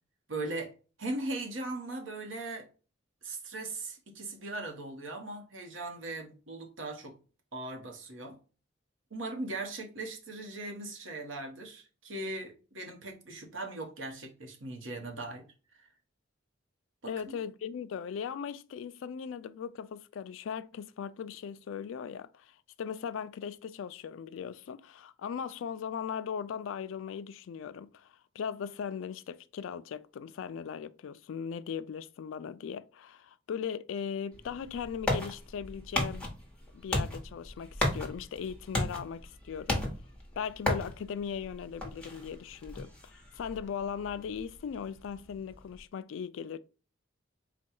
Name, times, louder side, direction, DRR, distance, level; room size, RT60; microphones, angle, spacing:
voice 1, 0.3-0.7 1.0-2.7 3.2-7.1 7.5-8.4 9.1-15.5 15.7-15.9 17.0-17.4, right 2 dB, 75° right, 1.1 m, -39 dB
voice 2, 17.0-36.3 36.7-39.9 40.4-46.6, left 7 dB, 75° left, 0.3 m, -38 dB
sound 1, 34.3-45.8, left 1 dB, 5° left, 1.1 m, -36 dB
4.2 x 2.3 x 4.4 m
head